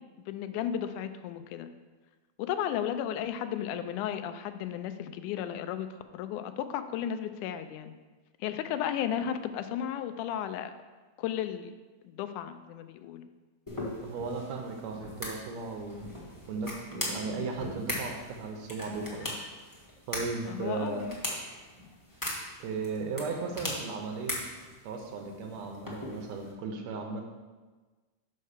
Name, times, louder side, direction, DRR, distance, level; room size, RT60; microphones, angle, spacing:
voice 1, 0.3-1.7 2.4-5.9 6.1-7.9 8.4-10.7 11.2-11.7 12.0-13.3 20.5-21.2, left 10 dB, 90° left, 10 dB, 2.0 m, -34 dB
sound 1, 13.7-26.5, left 1 dB, 25° left, 0.4 m, -40 dB
voice 2, 14.0-16.1 16.5-19.4 20.1-21.1 22.6-24.3 24.8-27.2, right 4 dB, 70° right, 3 dB, 2.0 m, -36 dB
5.5 x 5.5 x 6.5 m, 1.3 s
omnidirectional pair, 3.5 m